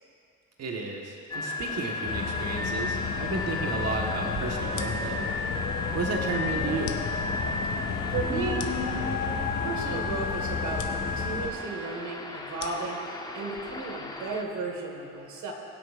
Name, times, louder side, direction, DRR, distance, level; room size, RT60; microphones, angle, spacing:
voice 1, 0.6-5.2 5.9-7.0, right 3 dB, 55° right, 0 dB, 1.5 m, -33 dB
sound 1, 1.3-14.4, left 4 dB, 15° left, 0.9 m, -34 dB
sound 2, 2.0-11.5, left 4 dB, 70° left, 2.0 m, -32 dB
sound 3, 4.7-14.5, left 9 dB, 90° left, 0.9 m, -46 dB
voice 2, 8.1-8.7 9.6-13.0 13.3-15.5, right 3 dB, 75° right, 1 dB, 1.9 m, -34 dB
21.5 x 8.1 x 2.6 m, 2.6 s
cardioid pair, 90°, 30 cm